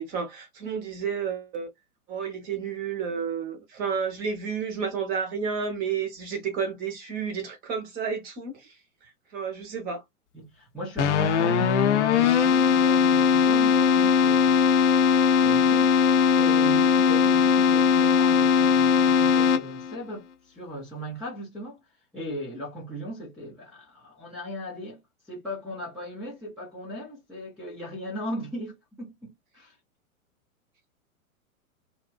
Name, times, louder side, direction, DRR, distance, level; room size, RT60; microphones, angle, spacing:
voice 1, 0.0-1.7 2.1-8.7 9.3-10.0, right 6 dB, 20° right, 0.7 m, -31 dB
voice 2, 10.3-14.7 15.4-21.8 22.1-29.8, equal, ahead, 0.3 m, -38 dB
Keyboard (musical), 11.0-20.0, left 7 dB, 55° left, 0.6 m, -20 dB
2.7 x 2.1 x 2.2 m
figure-of-eight pair, 105°, 43 cm